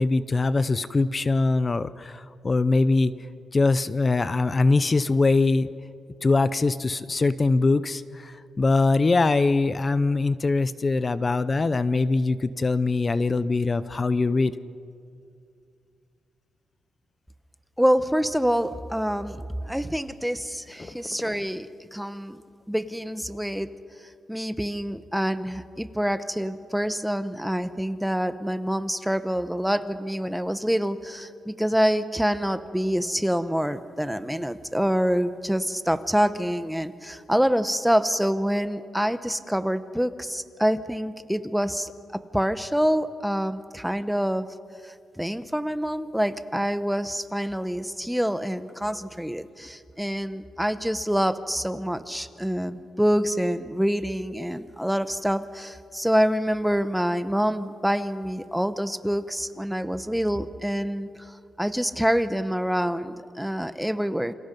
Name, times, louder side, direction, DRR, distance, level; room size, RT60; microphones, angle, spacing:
voice 1, 0.0-3.1 3.5-5.7 6.2-14.5 20.8-20.9, left 3 dB, 30° left, 14 dB, 0.6 m, -22 dB
voice 2, 17.8-22.4 22.7-23.7 24.3-44.5 44.8-64.3, equal, ahead, 11 dB, 0.9 m, -26 dB
29.0 x 26.5 x 5.4 m, 2.3 s
cardioid pair, 125°, 0 cm